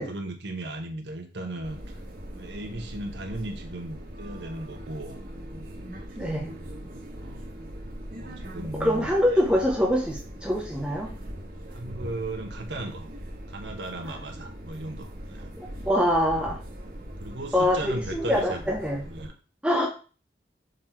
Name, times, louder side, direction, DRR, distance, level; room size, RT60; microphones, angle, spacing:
voice 1, 0.0-1.8 2.3-5.2 5.5-5.9 7.2-7.4 7.8-9.1 11.7-13.1 13.5-15.5 17.2-18.7 19.1-19.3, right 1 dB, 75° right, 3 dB, 1.3 m, -36 dB
sound 1, 1.6-19.3, equal, 50° right, 1.6 m, -40 dB
voice 2, 6.1-6.5 8.8-11.1 14.0-14.2 15.6-16.6 17.5-19.0 19.6-19.9, equal, 5° right, -1 dB, 0.9 m, -24 dB
6.5 x 4.1 x 4.4 m, 0.36 s
head